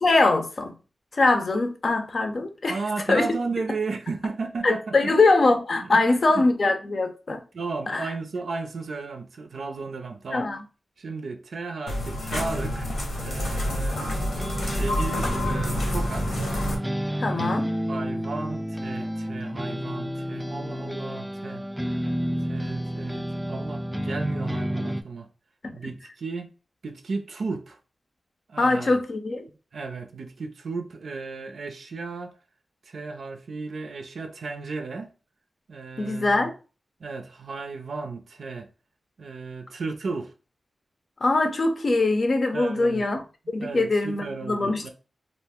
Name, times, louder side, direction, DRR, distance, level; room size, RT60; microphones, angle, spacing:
voice 1, 0.0-0.7 1.1-2.8 3.1-3.3 4.6-7.4 7.9-8.1 10.3-10.6 14.1-14.2 17.2-17.7 25.6-25.7 28.6-29.5 36.0-36.5 41.2-44.9, left 3 dB, 60° left, 0.5 m, -22 dB
voice 2, 2.7-5.1 5.8-6.4 7.5-10.5 11.0-12.9 13.2-14.1 14.6-16.4 17.3-21.6 22.5-25.3 25.7-26.5 26.8-27.8 28.5-29.0 29.7-32.3 32.9-35.1 35.7-36.5 37.0-38.7 39.2-40.3 42.5-43.1 43.6-44.9, right 4 dB, 80° right, 0.4 m, -34 dB
sound 1, 11.9-16.8, left 1 dB, 85° left, 0.9 m, -28 dB
sound 2, 14.1-25.0, equal, 5° right, 0.3 m, -30 dB
2.5 x 2.1 x 3.4 m
cardioid pair, 45°, 0 cm